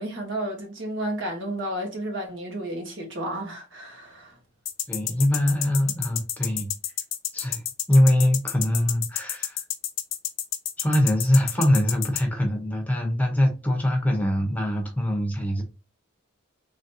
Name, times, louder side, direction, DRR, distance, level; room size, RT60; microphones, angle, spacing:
voice 1, 0.0-4.3, right 1 dB, 65° right, 1.3 m, -32 dB
sound 1, 4.7-12.2, left 11 dB, 75° left, 0.6 m, -29 dB
voice 2, 4.9-6.7 7.3-9.6 10.8-15.6, left 1 dB, 10° left, 0.8 m, -23 dB
3.9 x 3.4 x 2.7 m
head